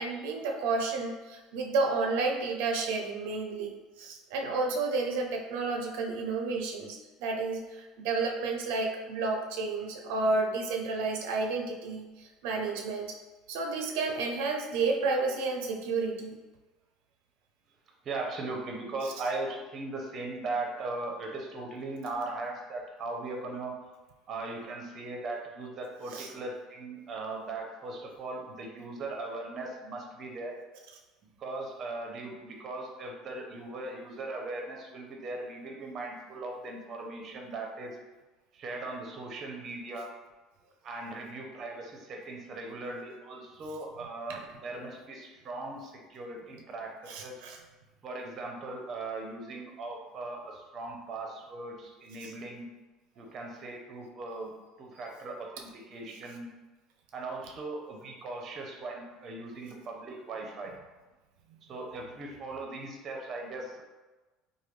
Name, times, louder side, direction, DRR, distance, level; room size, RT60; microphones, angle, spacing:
voice 1, 0.0-13.2 13.5-16.4 26.1-26.3 47.1-47.6 52.2-52.3, right 3 dB, 85° right, 2 dB, 0.4 m, -31 dB
voice 2, 18.0-23.7 24.3-30.5 31.4-38.0 38.5-40.1 40.8-47.4 48.0-52.7 53.2-54.5 54.8-56.5 57.1-60.7 61.7-63.8, right 2 dB, 35° right, 1 dB, 0.5 m, -39 dB
3.2 x 2.2 x 3.1 m, 1.2 s
cardioid pair, 150°, 0 cm